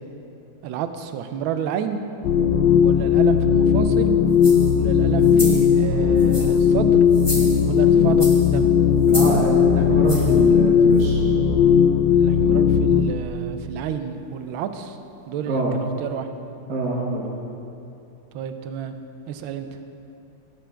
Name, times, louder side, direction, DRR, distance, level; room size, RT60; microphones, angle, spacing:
voice 1, 0.6-2.0 2.8-4.2 4.8-7.0 7.7-8.7 12.1-15.0 15.3-16.3 18.3-19.0 19.3-19.7, right 8 dB, 75° right, 8 dB, 1.3 m, -30 dB
sound 1, 2.2-13.1, left 7 dB, 75° left, 1.1 m, -17 dB
sound 2, 4.3-4.7 5.2-5.7 6.2-6.6 7.1-7.8 8.2-8.5 9.0-9.4 10.1-10.4 11.0-11.1, left 1 dB, 15° left, 1.0 m, -31 dB
voice 2, 9.1-11.2 15.5-15.7 16.7-17.3, right 2 dB, 55° right, -3 dB, 1.5 m, -25 dB
16.5 x 7.5 x 3.4 m, 2.7 s
omnidirectional pair, 2.4 m